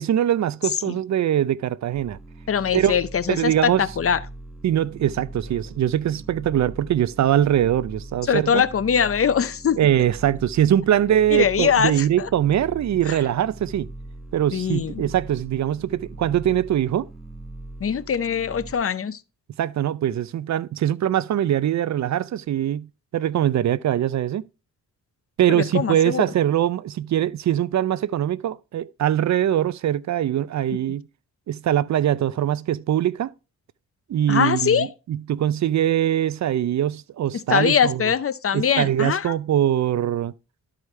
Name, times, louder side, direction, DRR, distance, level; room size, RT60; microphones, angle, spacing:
voice 1, 0.0-2.2 2.7-3.0 3.3-3.8 4.6-8.6 9.8-13.9 14.3-17.1 19.6-24.4 25.4-31.1 31.5-33.3 34.1-38.0 38.5-40.3, right 11 dB, 60° right, 0.5 m, -22 dB
sound 1, 1.9-18.7, right 2 dB, ahead, 1.5 m, -41 dB
voice 2, 2.5-4.2 8.3-9.8 11.3-12.3 13.1-13.2 14.5-15.0 17.8-19.2 25.5-26.2 34.3-34.9 37.5-39.3, left 7 dB, 45° left, 0.7 m, -22 dB
12.5 x 4.8 x 3.2 m
cardioid pair, 75°, 31 cm